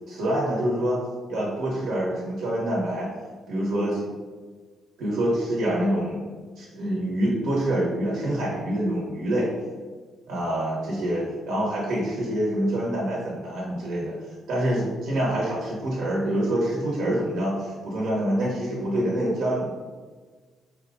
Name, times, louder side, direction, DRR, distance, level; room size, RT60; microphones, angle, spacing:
voice 1, 0.1-1.0 1.3-3.1 3.5-4.1 5.0-6.2 6.6-9.5 10.3-14.2 14.5-19.7, right 1 dB, 80° right, -5 dB, 1.1 m, -26 dB
4.3 x 2.4 x 3.7 m, 1.4 s
cardioid pair, 90°, 0 cm